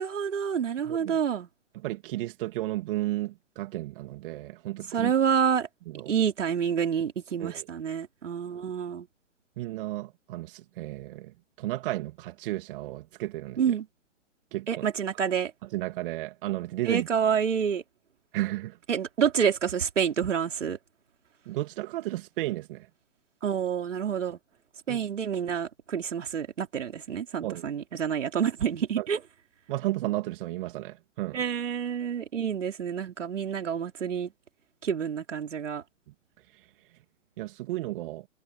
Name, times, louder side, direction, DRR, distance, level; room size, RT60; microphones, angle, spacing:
voice 1, 0.0-1.5 4.9-5.7 6.1-9.1 13.6-13.9 14.7-15.5 16.9-17.8 18.9-20.8 23.4-24.4 24.9-29.2 31.3-34.3 34.8-35.8, right 7 dB, 70° right, 4.4 m, -28 dB
voice 2, 0.8-1.2 1.7-5.1 5.9-6.1 7.4-7.7 9.6-13.8 14.5-14.9 15.6-17.1 18.3-18.8 21.5-22.9 24.9-25.0 27.4-27.6 29.0-29.1 29.7-31.4 36.5-36.9 37.4-38.3, right 17 dB, 45° right, 2.4 m, -33 dB
hypercardioid pair, 125°, 38 cm